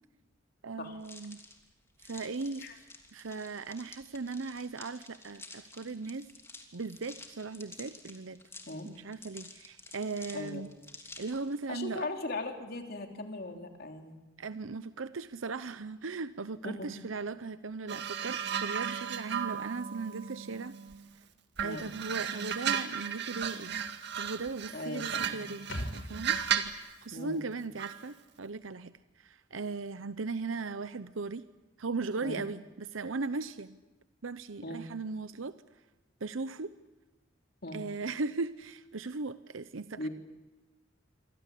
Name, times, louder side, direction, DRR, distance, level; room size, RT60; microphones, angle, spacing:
voice 1, 0.6-1.4 2.0-2.6 3.1-6.3 6.7-8.4 8.8-10.7 11.2-12.1 14.4-20.8 21.6-23.7 24.2-25.7 25.9-31.4 31.8-32.6 32.9-33.8 34.2-35.5 36.2-36.7 37.7-40.1, right 4 dB, 90° right, 13 dB, 0.8 m, -38 dB
sound 1, 1.0-11.5, left 3 dB, 15° left, 3.1 m, -51 dB
voice 2, 11.7-14.2 16.6-16.9 21.6-21.9 24.7-25.4 27.1-27.4 32.2-32.4 34.6-34.9 37.6-37.8 39.9-40.1, left 2 dB, 55° left, 4 dB, 3.4 m, -39 dB
sound 2, 17.9-21.1 21.6-26.8 27.8-28.0, right 8 dB, 60° right, 2.0 m, -35 dB
sound 3, 25.7-29.2 29.5-29.6, equal, 80° left, 5.1 m, -44 dB
27.5 x 24.5 x 8.5 m, 1.1 s
head